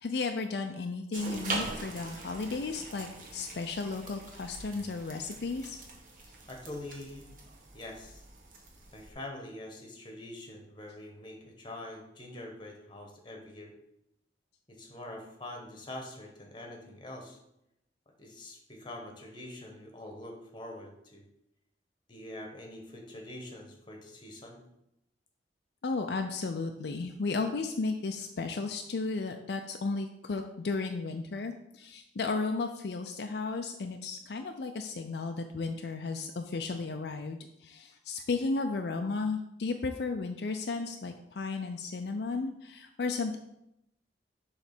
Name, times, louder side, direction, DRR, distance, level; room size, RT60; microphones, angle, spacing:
voice 1, 0.0-5.8 25.8-43.4, left 3 dB, 65° left, 5 dB, 0.4 m, -34 dB
sound 1, 1.1-9.1, right 3 dB, 50° right, 1.3 m, -42 dB
voice 2, 6.5-7.2 7.7-8.2 8.9-13.7 14.7-17.4 18.2-21.2 22.1-24.6, left 1 dB, 25° left, 2 dB, 1.3 m, -45 dB
7.1 x 3.3 x 5.9 m, 0.82 s
head